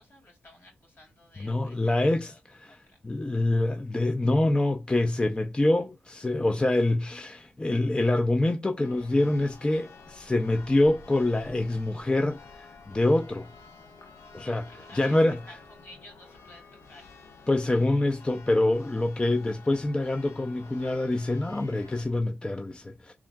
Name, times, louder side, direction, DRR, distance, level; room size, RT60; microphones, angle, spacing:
voice 1, 0.0-3.0 14.2-15.2 15.5-17.1, left 1 dB, 50° left, 2.1 m, -53 dB
voice 2, 1.4-13.5 14.3-14.6 14.9-15.4 17.5-23.1, left 2 dB, 20° left, 0.4 m, -26 dB
Church bell, 8.8-22.0, left 4 dB, 75° left, 0.7 m, -50 dB
3.6 x 3.5 x 2.2 m
cardioid pair, 55°, 5 cm